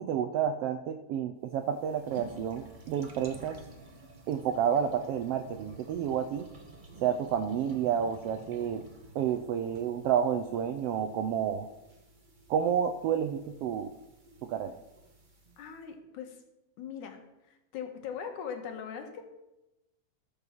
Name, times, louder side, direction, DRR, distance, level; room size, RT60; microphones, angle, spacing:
voice 1, 0.0-3.6 4.3-6.5 7.0-8.8 9.1-11.7 12.5-13.9 14.4-14.8, right 8 dB, 85° right, 9 dB, 1.3 m, -30 dB
sound 1, 1.5-15.8, right 2 dB, 70° right, 0.4 m, -52 dB
voice 2, 15.6-16.4 16.8-17.2 17.5-19.2, left 7 dB, 90° left, 4 dB, 2.9 m, -40 dB
13.5 x 5.5 x 7.2 m, 0.96 s
omnidirectional pair, 3.4 m